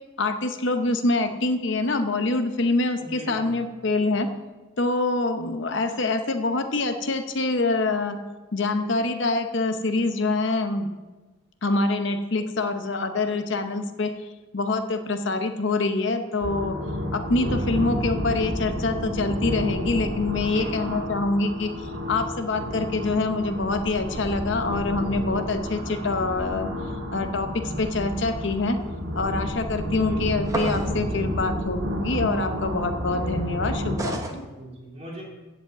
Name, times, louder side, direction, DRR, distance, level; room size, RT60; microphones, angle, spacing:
voice 1, 0.2-4.3 4.8-8.2 8.5-10.9 11.6-14.1 14.5-16.8 17.1-26.7 27.1-28.8 29.2-34.5, left 3 dB, 60° left, 8 dB, 0.7 m, -25 dB
voice 2, 3.0-3.6 20.4-21.0 30.0-30.3 34.5-35.2, right 1 dB, 30° right, -4 dB, 3.3 m, -40 dB
sound 1, 16.4-33.9, equal, 60° right, 2.6 m, -30 dB
sound 2, 30.5-31.0 34.0-34.4, right 2 dB, 15° right, 1.0 m, -30 dB
15.0 x 5.1 x 7.9 m, 1.2 s
head